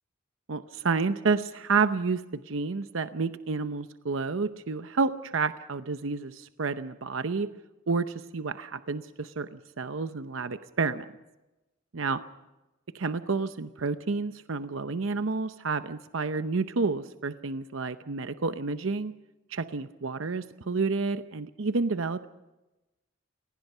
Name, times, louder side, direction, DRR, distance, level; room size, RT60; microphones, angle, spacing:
voice 1, 0.5-7.5 7.9-11.1 11.9-12.2 12.9-19.1 19.5-22.3, right 4 dB, 75° right, 11 dB, 0.8 m, -30 dB
27.5 x 19.0 x 5.6 m, 1.0 s
head